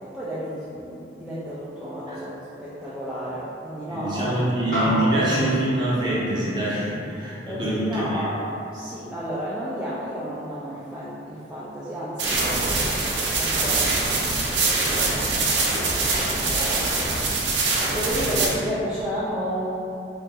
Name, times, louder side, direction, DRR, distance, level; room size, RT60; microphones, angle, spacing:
voice 1, 0.0-4.4 7.5-8.4 8.7-13.0 13.3-17.2 17.5-17.6 17.9-19.8, equal, 5° right, -12 dB, 0.3 m, -32 dB
voice 2, 3.9-8.2, right 1 dB, 25° right, -8 dB, 0.7 m, -24 dB
sound 1, 4.7-9.3, equal, 50° left, 1.4 m, -32 dB
sound 2, 12.2-18.5, right 3 dB, 70° right, 0.5 m, -23 dB
2.7 x 2.5 x 3.7 m, 2.7 s
head